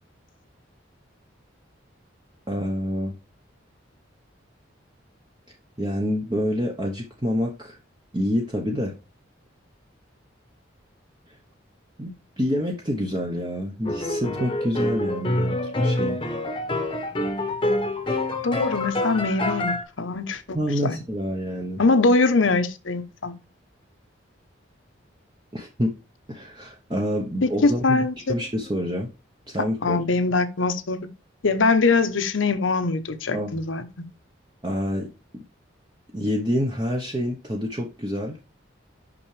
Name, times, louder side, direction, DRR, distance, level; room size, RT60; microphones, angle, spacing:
voice 1, 2.5-3.1 5.8-7.8 8.1-8.9 11.3-11.4 12.0-16.2 20.5-21.8 25.5-25.9 26.3-29.1 29.5-30.0 33.3-33.6 34.6-35.4 36.1-38.4, equal, 20° right, 0.9 m, -27 dB
sound 1, 13.8-19.8, left 1 dB, 25° left, 0.9 m, -26 dB
voice 2, 18.4-20.6 20.8-21.0 21.8-23.3 27.4-28.3 29.8-31.0 31.4-33.8, left 3 dB, 80° left, 0.8 m, -22 dB
6.1 x 5.8 x 3.2 m
head